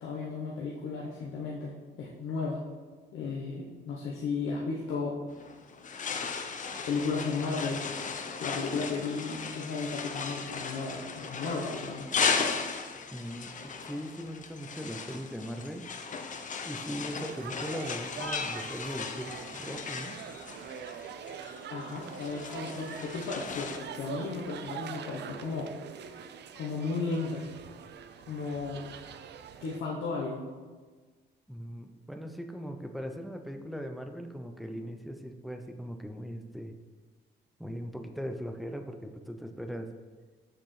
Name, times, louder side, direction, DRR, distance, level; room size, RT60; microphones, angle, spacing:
voice 1, 0.0-1.7 2.0-2.6 3.1-5.2 6.9-7.8 8.4-12.1 21.7-27.5 28.3-28.8 29.6-30.5, left 4 dB, 80° left, -4 dB, 0.9 m, -34 dB
sound 1, 5.3-23.8, left 5 dB, 40° left, 0.6 m, -36 dB
voice 2, 13.1-15.8 16.6-20.1 31.5-36.7 37.6-39.9, equal, ahead, 5 dB, 0.6 m, -39 dB
sound 2, 17.3-29.8, right 7 dB, 60° right, 0.5 m, -44 dB
6.8 x 5.9 x 3.2 m, 1.4 s
cardioid pair, 90°, 20 cm